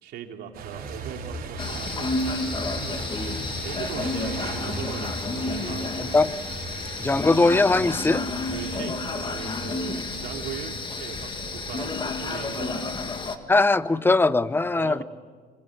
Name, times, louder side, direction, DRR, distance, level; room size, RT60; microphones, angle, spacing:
voice 1, 0.0-2.2 3.5-6.5 8.4-12.8 14.7-15.0, right 8 dB, 80° right, 3 dB, 2.9 m, -39 dB
Truck, 0.5-12.8, right 3 dB, 60° right, 4.3 m, -38 dB
sound 1, 1.6-13.4, left 3 dB, 30° left, 2.1 m, -31 dB
voice 2, 7.0-8.2 13.5-15.0, left 3 dB, 10° left, 16 dB, 0.7 m, -20 dB
26.0 x 24.0 x 7.9 m, 1.5 s
cardioid pair, 110°, 17 cm